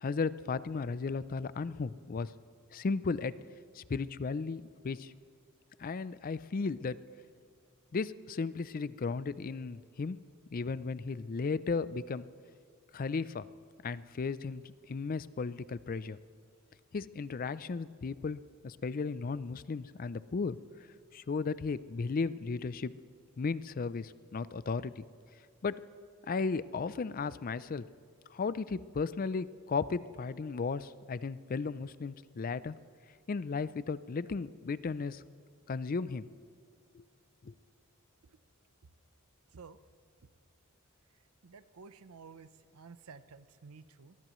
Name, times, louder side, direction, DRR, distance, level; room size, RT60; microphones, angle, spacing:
voice 1, 0.0-2.3 2.7-3.3 3.7-5.1 5.8-7.0 7.9-10.2 10.5-12.3 12.9-13.5 13.8-16.2 16.9-20.6 21.1-22.9 23.4-25.0 25.6-25.7 26.3-27.8 28.3-32.8 33.3-35.2 35.7-36.2 36.9-37.0 37.4-37.5, left 4 dB, 40° left, 16 dB, 0.4 m, -35 dB
voice 2, 41.4-44.2, right 5 dB, 85° right, 13 dB, 0.7 m, -52 dB
23.0 x 19.5 x 3.1 m, 2.2 s
head